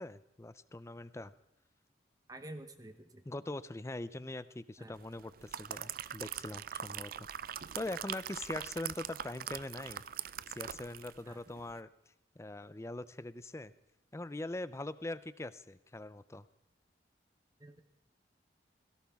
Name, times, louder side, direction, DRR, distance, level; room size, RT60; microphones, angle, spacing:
voice 1, 0.0-1.3 3.3-7.3 7.7-11.9 12.4-13.7 14.1-16.5, left 2 dB, 15° left, 16 dB, 0.4 m, -42 dB
voice 2, 2.3-3.2 4.8-5.0 11.3-11.4 17.6-17.8, right 1 dB, 20° right, 8 dB, 0.9 m, -49 dB
sound 1, 5.2-11.2 11.6-11.7, right 9 dB, 50° right, 0.4 m, -42 dB
17.5 x 17.0 x 3.6 m, 0.91 s
head